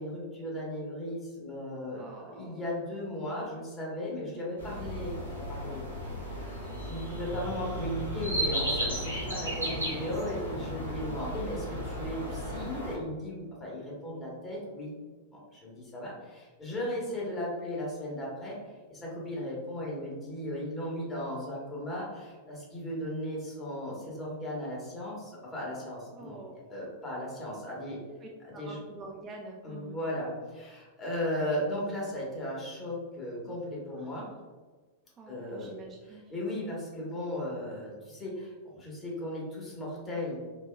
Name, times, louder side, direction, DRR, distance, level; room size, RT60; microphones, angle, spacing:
voice 1, 0.0-5.8 6.2-15.0 15.3-26.4 26.7-28.0 28.4-28.8 29.6-34.3 35.3-35.7 36.1-40.4, left 1 dB, 20° left, -5 dB, 1.3 m, -36 dB
voice 2, 1.9-2.6 9.5-10.0 26.2-26.6 28.2-30.0 34.0-34.4 35.2-36.3, right 3 dB, 25° right, 0 dB, 0.4 m, -47 dB
sound 1, 4.6-13.0, equal, 90° left, 1.3 m, -35 dB
4.1 x 2.7 x 2.3 m, 1.4 s
figure-of-eight pair, 95°, 0 cm